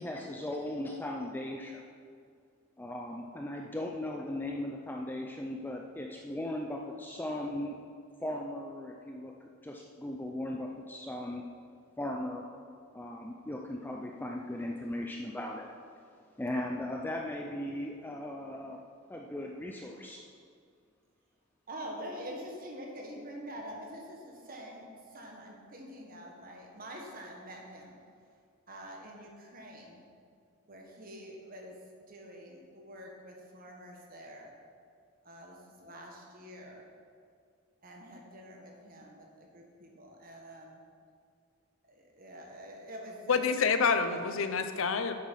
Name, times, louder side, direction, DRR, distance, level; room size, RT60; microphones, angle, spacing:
voice 1, 0.0-1.8 2.8-7.8 8.2-9.3 9.6-11.4 12.0-12.4 12.9-15.7 16.4-18.8 19.1-20.2, left 1 dB, 10° left, 0 dB, 0.4 m, -37 dB
voice 2, 21.7-27.9 28.7-30.0 30.7-31.7 32.1-34.5 35.2-36.9 37.8-40.8 41.9-43.5, equal, 40° right, 0 dB, 1.5 m, -46 dB
voice 3, 43.3-45.1, left 5 dB, 65° left, 9 dB, 0.6 m, -27 dB
8.3 x 7.8 x 5.5 m, 2.2 s
head